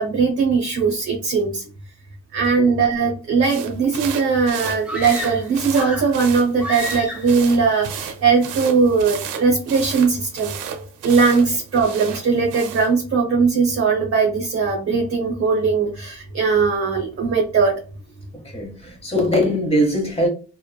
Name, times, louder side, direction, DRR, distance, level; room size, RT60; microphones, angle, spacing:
voice 1, 0.0-1.6 2.3-10.5 11.0-17.7, right 5 dB, 45° right, 0.8 m, -19 dB
sound 1, 3.4-12.9, right 8 dB, 85° right, 0.5 m, -34 dB
sound 2, 4.8-6.2 6.6-7.4, left 1 dB, 5° right, 0.9 m, -30 dB
voice 2, 18.3-20.3, equal, 20° left, 1.0 m, -21 dB
2.9 x 2.1 x 2.3 m
cardioid pair, 90°, 30 cm